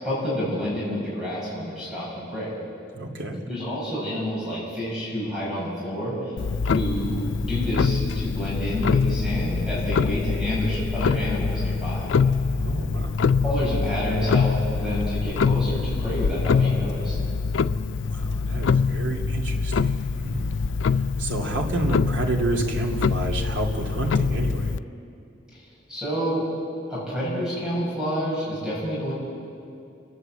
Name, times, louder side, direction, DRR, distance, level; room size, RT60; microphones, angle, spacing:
voice 1, 0.0-2.5 3.5-6.2 6.7-12.1 13.4-17.1 25.5-25.6 25.9-26.5 26.9-29.1, equal, 5° right, -8 dB, 6.6 m, -29 dB
voice 2, 2.9-3.4 12.5-13.2 18.0-20.6 21.2-24.7, right 2 dB, 85° right, 0 dB, 2.6 m, -29 dB
Clock, 6.4-24.8, left 5 dB, 80° left, 0.4 m, -24 dB
29.5 x 11.0 x 7.8 m, 2.6 s
head